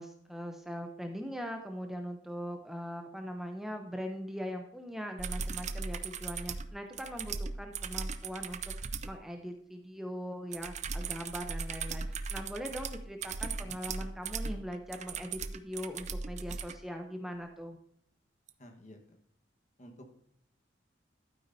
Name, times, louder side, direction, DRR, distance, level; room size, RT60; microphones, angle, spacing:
voice 1, 0.0-17.8, equal, ahead, 3 dB, 0.7 m, -41 dB
sound 1, 5.2-9.2 10.5-16.8 18.5-18.6, right 4 dB, 40° right, 0.5 m, -38 dB
voice 2, 13.4-13.8 18.6-19.2 19.8-20.2, equal, 40° left, 4 dB, 1.4 m, -52 dB
11.5 x 9.4 x 2.7 m, 0.70 s
head